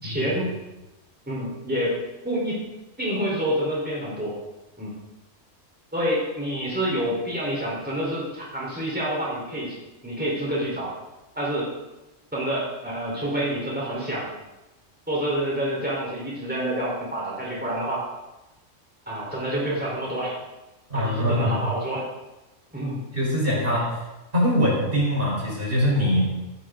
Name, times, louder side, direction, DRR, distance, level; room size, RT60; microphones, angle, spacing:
voice 1, 0.0-0.6 1.3-2.0 2.2-2.6 3.0-4.4 4.8-4.9 5.9-9.8 10.0-11.0 11.4-11.7 12.3-14.3 15.1-18.1 19.1-20.3 20.9-22.1 22.7-23.0, equal, 5° right, -5 dB, 4.3 m, -27 dB
voice 2, 20.9-21.6 23.1-24.0 24.3-26.2, equal, 40° right, -4 dB, 5.0 m, -23 dB
16.0 x 15.0 x 3.9 m, 1.0 s
omnidirectional pair, 1.4 m